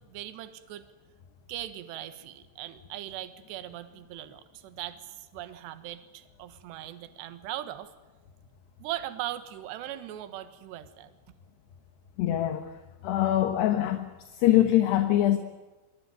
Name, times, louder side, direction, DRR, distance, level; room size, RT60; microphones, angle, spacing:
voice 1, 0.1-0.9 1.5-7.9 8.8-11.1, right 13 dB, 70° right, 10 dB, 3.3 m, -39 dB
voice 2, 12.2-12.6 13.0-14.1 14.4-15.4, left 13 dB, 70° left, 7 dB, 3.1 m, -23 dB
25.0 x 24.0 x 9.3 m, 1.2 s
omnidirectional pair, 5.6 m